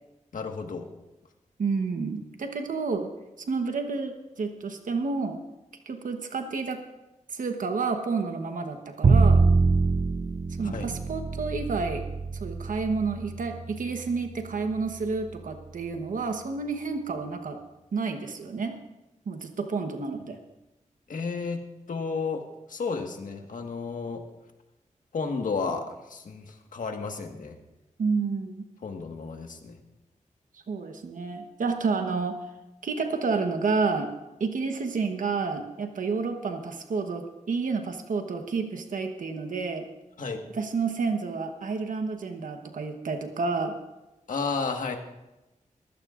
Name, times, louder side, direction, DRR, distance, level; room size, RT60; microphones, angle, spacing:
voice 1, 0.3-0.9 10.6-10.9 21.1-22.4 22.7-24.2 25.1-27.6 28.8-29.8 40.2-40.4 44.3-45.0, left 4 dB, 85° left, 4 dB, 1.6 m, -32 dB
voice 2, 1.6-3.1 3.5-5.4 5.9-6.8 7.3-9.4 10.6-12.1 12.3-17.6 17.9-18.8 19.3-20.4 28.0-28.6 30.5-32.4 32.8-34.1 34.4-39.9 40.5-43.7, right 4 dB, 85° right, 5 dB, 1.1 m, -30 dB
Bowed string instrument, 9.0-15.2, right 4 dB, 40° right, 0.5 m, -25 dB
22.0 x 15.5 x 2.5 m, 1.0 s
wide cardioid pair, 100°, 13 cm